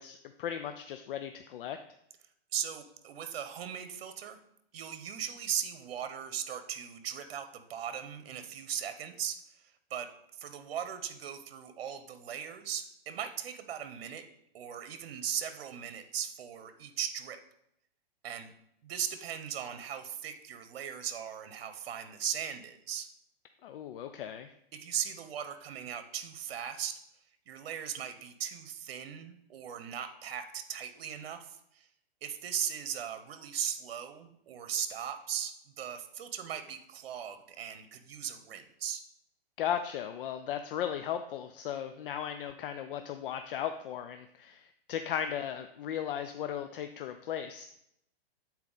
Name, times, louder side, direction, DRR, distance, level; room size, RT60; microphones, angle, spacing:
voice 1, 0.0-1.8 23.6-24.5 39.6-47.7, left 9 dB, 60° left, 8 dB, 0.5 m, -36 dB
voice 2, 2.5-4.4 4.7-14.3 14.5-17.4 18.2-18.5 18.8-23.1 24.7-27.0 27.5-31.9 32.2-39.0, right 9 dB, 70° right, 10 dB, 1.0 m, -38 dB
8.3 x 4.3 x 3.9 m, 0.76 s
hypercardioid pair, 145°, 31 cm